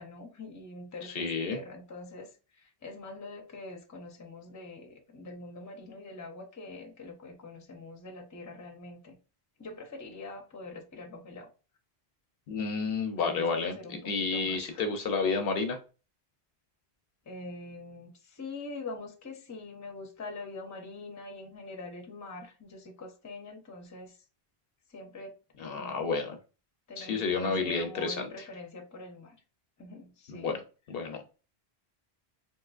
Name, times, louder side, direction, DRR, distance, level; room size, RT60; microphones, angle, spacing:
voice 1, 0.0-9.2 9.6-11.5 13.2-14.9 17.2-24.2 24.9-26.1 26.9-29.4 29.8-30.6, left 2 dB, 20° left, 0.5 m, -44 dB
voice 2, 1.1-1.6 12.5-15.8 25.6-26.4 27.0-28.3 30.3-30.6 30.9-31.2, left 4 dB, 65° left, 0.7 m, -30 dB
3.7 x 2.7 x 2.3 m
omnidirectional pair, 1.1 m